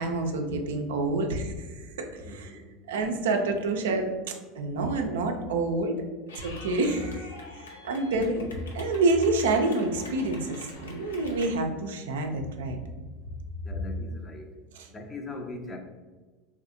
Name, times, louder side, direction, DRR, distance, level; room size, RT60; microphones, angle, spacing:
voice 1, 0.0-1.9 2.1-2.6 2.9-6.0 6.4-7.3 7.5-8.5 8.7-12.8, right 2 dB, 75° right, 4 dB, 0.4 m, -28 dB
voice 2, 2.2-2.7 13.7-14.5 14.9-15.8, left 2 dB, 25° left, 3 dB, 0.6 m, -40 dB
Clapping / Cheering, 6.3-11.5, left 2 dB, 85° left, 0.5 m, -46 dB
3.3 x 2.7 x 2.6 m, 1.3 s
hypercardioid pair, 80°, 0 cm